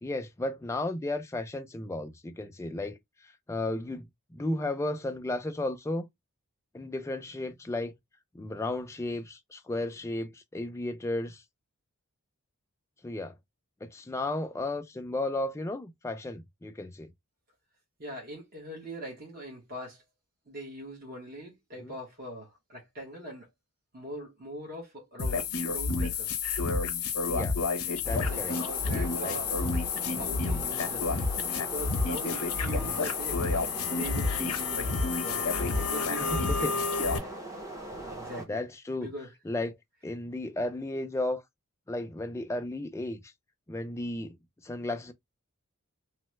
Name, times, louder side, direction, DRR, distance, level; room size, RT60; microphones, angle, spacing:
voice 1, 0.0-6.1 6.7-7.9 8.3-11.4 13.0-13.4 13.8-17.1 21.8-21.9 27.3-27.6 28.0-28.6 29.2-29.4 32.8-33.0 35.3-35.4 36.2-36.7 38.4-39.1 39.4-39.8 40.0-41.4 41.9-43.3 43.7-44.4 44.6-45.1, left 2 dB, 15° left, 0.3 m, -34 dB
voice 2, 18.0-20.0 20.5-23.5 23.9-25.4 25.7-26.4 28.3-34.9 35.2-36.8 37.2-37.4 38.0-38.6 39.0-39.3, right 1 dB, 45° right, 1.0 m, -42 dB
sound 1, 25.2-37.2, left 4 dB, 85° left, 0.8 m, -29 dB
sound 2, 28.0-38.4, right 2 dB, 15° right, 0.7 m, -41 dB
3.1 x 2.0 x 3.1 m
head